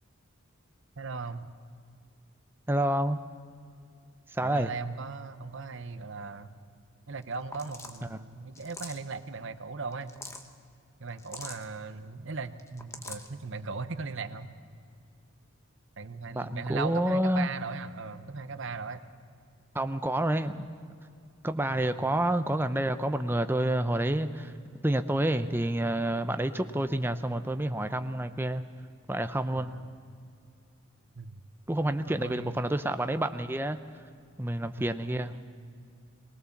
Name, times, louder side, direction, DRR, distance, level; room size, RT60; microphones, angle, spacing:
voice 1, 1.0-1.5 4.4-6.6 7.1-10.1 11.0-14.5 16.0-19.0 21.7-22.1 29.5-29.9 31.2-31.4 32.1-32.6, right 4 dB, 60° right, 11 dB, 0.8 m, -38 dB
voice 2, 2.7-3.2 4.3-4.7 8.1-8.2 16.3-17.5 19.7-20.7 21.4-24.5 24.8-28.6 29.1-29.8 31.7-33.8 34.4-35.3, right 1 dB, 10° right, 9 dB, 0.6 m, -28 dB
sound 1, 7.2-7.3 7.5-8.0 8.5-9.1 9.9-10.5 11.2-11.6 12.6-13.3, left 3 dB, 15° left, 1.0 m, -43 dB
20.0 x 18.5 x 7.1 m, 2.3 s
head